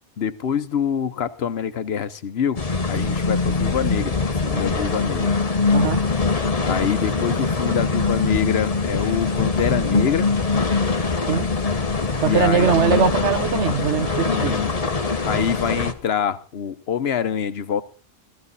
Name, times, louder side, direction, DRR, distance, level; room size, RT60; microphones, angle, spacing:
voice 1, 0.2-2.6 2.9-5.3 6.6-10.3 12.2-13.1 14.3-14.7 15.2-17.8, left 8 dB, 70° left, 1.1 m, -25 dB
sound 1, 2.6-15.9, left 4 dB, 35° left, 1.1 m, -22 dB
voice 2, 5.7-6.0 11.3-11.5 12.2-14.5, right 7 dB, 90° right, 1.3 m, -21 dB
15.5 x 14.0 x 4.1 m
omnidirectional pair, 1.1 m